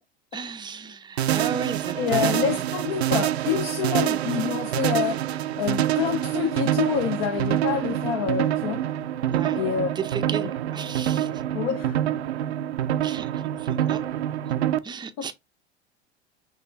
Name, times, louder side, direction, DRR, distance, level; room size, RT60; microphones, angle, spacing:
voice 1, 0.3-2.6 9.3-9.6 10.0-10.5 10.7-11.3 13.0-14.1 14.8-15.3, right 5 dB, 15° right, 0.6 m, -34 dB
sound 1, 1.2-14.8, right 11 dB, 75° right, 0.5 m, -26 dB
voice 2, 2.0-8.8 9.5-9.9 11.5-12.0 15.2-15.3, left 8 dB, 50° left, 0.8 m, -27 dB
5.8 x 2.5 x 3.5 m
figure-of-eight pair, 75°, 32 cm